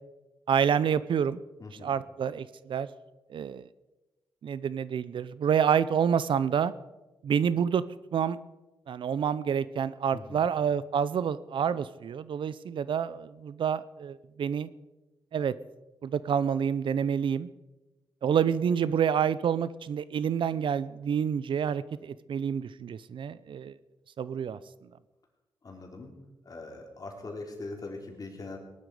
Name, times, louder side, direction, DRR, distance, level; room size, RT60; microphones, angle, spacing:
voice 1, 0.5-1.4 1.8-2.9 3.3-3.7 4.4-6.7 7.2-7.8 8.1-8.4 8.9-14.7 15.3-15.5 16.0-17.5 18.2-23.7 24.2-24.6, right 7 dB, 70° right, 17 dB, 0.6 m, -28 dB
voice 2, 1.6-1.9 10.1-10.5 25.6-26.2 26.4-28.6, left 3 dB, 45° left, 1 dB, 3.6 m, -41 dB
18.5 x 11.5 x 4.9 m, 1.1 s
cardioid pair, 80°, 9 cm